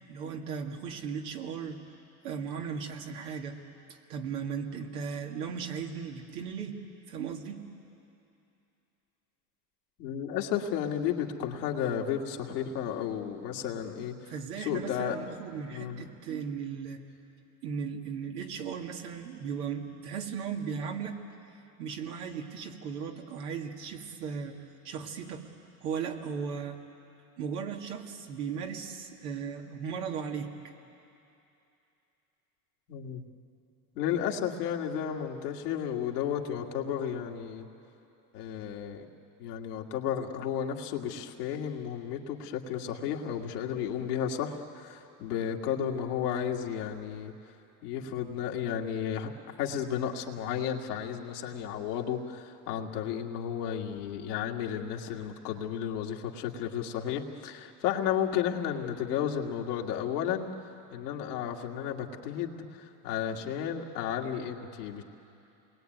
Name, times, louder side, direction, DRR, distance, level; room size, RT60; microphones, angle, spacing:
voice 1, 0.1-1.8 2.2-3.6 4.1-6.8 7.1-7.6 14.3-17.0 17.6-21.2 21.8-24.6 24.8-25.5 25.8-26.8 27.4-30.5, right 6 dB, 85° right, 2 dB, 2.4 m, -36 dB
voice 2, 10.0-14.1 14.6-15.2 15.7-16.0 32.9-33.2 34.0-37.7 38.3-39.1 39.4-47.3 47.8-49.3 49.6-60.5 60.9-65.0, left 9 dB, 90° left, 1 dB, 2.2 m, -33 dB
28.5 x 21.0 x 9.3 m, 2.8 s
supercardioid pair, 90°, 45 cm